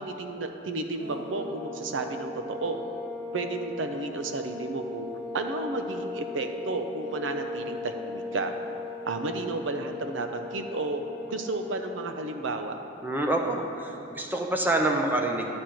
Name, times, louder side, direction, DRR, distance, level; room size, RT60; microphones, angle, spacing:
voice 1, 0.0-2.8 3.3-5.1 5.3-8.5 9.0-11.0 11.3-12.8, right 3 dB, 75° right, 6 dB, 0.6 m, -32 dB
sound 1, 1.0-12.0, left 2 dB, 60° right, 1.9 m, -38 dB
voice 2, 13.0-15.5, right 1 dB, 10° right, 2 dB, 0.7 m, -27 dB
10.5 x 4.3 x 7.6 m, 2.8 s
head